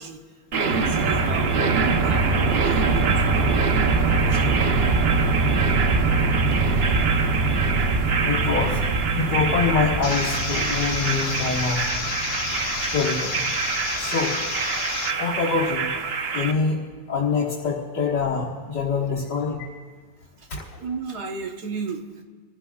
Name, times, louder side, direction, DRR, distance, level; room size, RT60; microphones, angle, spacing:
voice 1, 0.0-1.8 2.0-4.7 20.4-20.5 20.8-22.2, right 5 dB, 55° right, 2 dB, 1.6 m, -35 dB
sound 1, 0.5-16.5, right 4 dB, 75° right, 0.5 m, -23 dB
voice 2, 8.2-8.8 9.1-11.9 12.8-13.5 14.0-14.4 15.2-15.9 16.3-19.7 20.5-20.6, left 5 dB, 60° left, -6 dB, 2.3 m, -25 dB
sound 2, 10.0-15.1, left 8 dB, 80° left, 1.6 m, -31 dB
28.0 x 15.5 x 2.3 m, 1.4 s
omnidirectional pair, 2.1 m